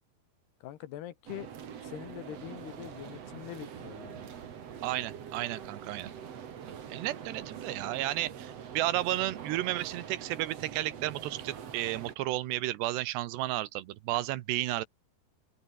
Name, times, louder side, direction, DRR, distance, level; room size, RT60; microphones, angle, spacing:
voice 1, 0.6-1.5 1.8-4.3, left 12 dB, 75° left, 3.5 m, -43 dB
sound 1, 1.3-12.1, right 8 dB, 45° right, 2.4 m, -44 dB
voice 2, 4.8-6.1 6.9-14.9, right 15 dB, 75° right, 3.1 m, -33 dB
open air
omnidirectional pair, 5.0 m